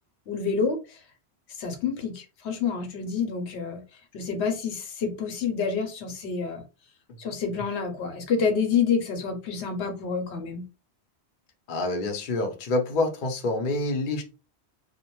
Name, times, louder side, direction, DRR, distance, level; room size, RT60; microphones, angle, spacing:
voice 1, 0.3-1.0 1.6-3.8 4.1-6.6 7.2-10.6, left 5 dB, 80° left, 5 dB, 0.9 m, -28 dB
voice 2, 11.7-14.2, left 2 dB, 55° left, 3 dB, 0.7 m, -27 dB
2.4 x 2.1 x 2.9 m, 0.31 s
omnidirectional pair, 1.1 m